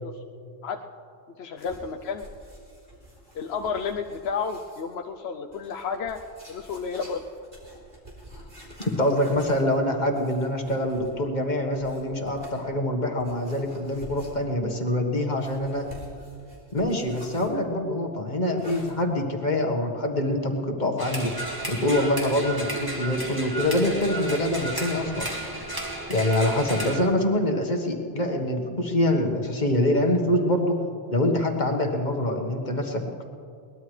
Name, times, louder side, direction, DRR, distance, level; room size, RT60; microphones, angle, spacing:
voice 1, 1.4-2.2 3.3-6.2 6.5-7.2 15.3-15.4, left 6 dB, 80° left, 3 dB, 0.9 m, -31 dB
sound 1, 1.6-4.9 5.5-11.3 11.8-12.6 13.2-14.7 15.3-17.6 18.6-18.9, equal, 55° right, 3.6 m, -48 dB
voice 2, 8.9-15.9 16.7-21.3 21.7-25.3 26.1-30.8 31.1-33.3, left 1 dB, 45° left, 3 dB, 1.6 m, -25 dB
sound 2, 21.0-27.0, right 1 dB, 20° right, 2.0 m, -33 dB
22.0 x 20.0 x 3.3 m, 2.4 s
omnidirectional pair, 1.1 m